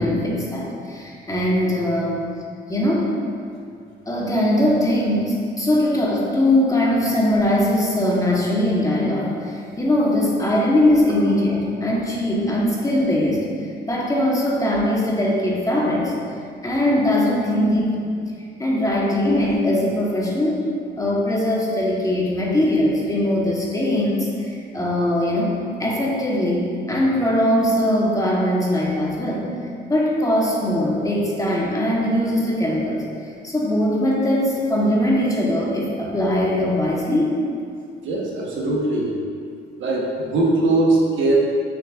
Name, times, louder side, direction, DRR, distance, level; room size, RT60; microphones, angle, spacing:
voice 1, 0.0-2.2 2.7-3.1 4.1-13.5 13.8-16.1 16.6-18.1 18.6-20.7 21.0-29.5 29.9-33.0 33.4-37.4, left 1 dB, 15° left, -4 dB, 1.2 m, -21 dB
voice 2, 38.0-39.1 39.8-41.3, right 2 dB, 75° right, -3 dB, 1.3 m, -20 dB
6.6 x 6.2 x 2.5 m, 2.3 s
cardioid pair, 90°, 20 cm